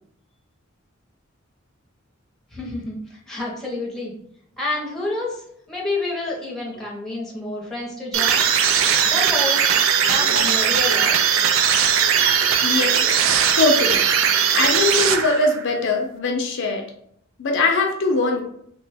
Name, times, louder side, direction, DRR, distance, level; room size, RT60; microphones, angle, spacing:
voice 1, 2.5-4.1 4.6-8.5 9.0-9.6 10.1-11.2, left 2 dB, ahead, -4 dB, 0.7 m, -29 dB
sound 1, 8.1-15.6, right 8 dB, 70° right, 0.3 m, -19 dB
voice 2, 12.6-13.1 13.6-14.0 14.5-16.8 17.4-18.4, left 3 dB, 60° left, 2 dB, 0.5 m, -21 dB
2.9 x 2.1 x 3.3 m, 0.68 s
head